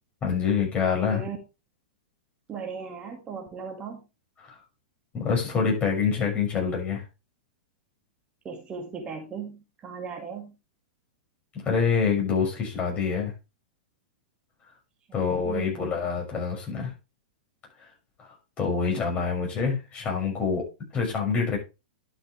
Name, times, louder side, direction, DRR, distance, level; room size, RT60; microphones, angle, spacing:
voice 1, 0.2-1.2 5.1-7.0 11.6-13.3 15.1-16.9 18.6-20.6 20.9-21.6, left 6 dB, 25° left, 0 dB, 6.2 m, -26 dB
voice 2, 2.5-4.0 8.4-10.5 15.1-15.9, right 6 dB, 25° right, 2 dB, 2.0 m, -37 dB
11.5 x 7.0 x 3.3 m, 0.27 s
hypercardioid pair, 105°, 5 cm